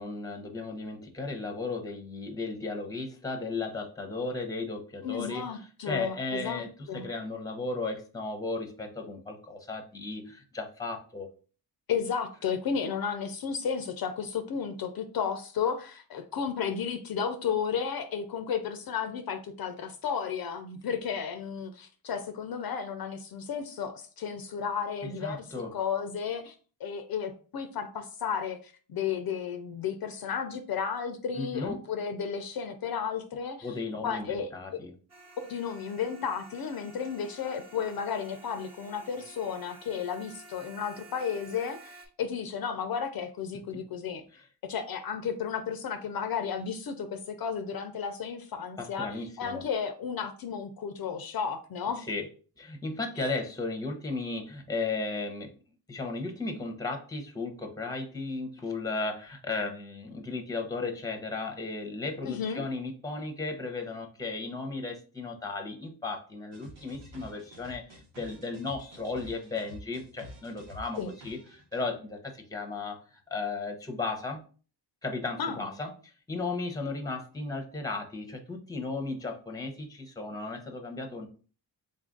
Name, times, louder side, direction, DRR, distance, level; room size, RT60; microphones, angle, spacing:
voice 1, 0.0-11.3 25.0-25.7 31.3-31.8 33.6-34.9 44.3-44.5 48.8-49.6 52.1-52.3 52.6-55.5 55.9-74.4 75.0-81.3, left 3 dB, 10° left, 3 dB, 0.7 m, -35 dB
voice 2, 5.0-6.6 6.9-7.1 11.9-26.5 26.8-33.7 34.0-34.8 35.4-44.2 44.6-52.1 53.2-53.3 62.3-62.6 71.0-71.1 75.4-75.6, left 7 dB, 55° left, 8 dB, 0.5 m, -33 dB
sound 1, 35.1-42.1, right 3 dB, 35° right, 1.1 m, -52 dB
sound 2, 66.5-71.8, left 1 dB, 90° right, 1.3 m, -49 dB
3.8 x 2.5 x 3.7 m, 0.39 s
cardioid pair, 100°, 44 cm